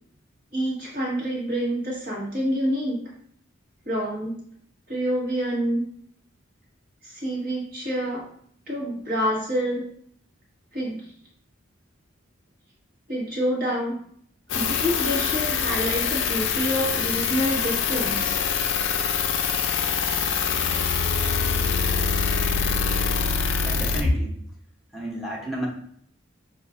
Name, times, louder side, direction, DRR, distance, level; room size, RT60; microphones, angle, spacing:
voice 1, 0.5-3.0 3.8-4.4 4.9-5.8 7.0-8.3 8.7-9.8 10.7-11.0 13.1-13.9 14.5-18.4 21.9-22.1, equal, 45° right, -4 dB, 1.4 m, -27 dB
sound 1, 14.5-24.0, left 6 dB, 60° left, 0.4 m, -24 dB
voice 2, 23.6-24.3 24.9-25.7, equal, ahead, -4 dB, 0.8 m, -27 dB
6.3 x 2.4 x 2.5 m, 0.63 s
head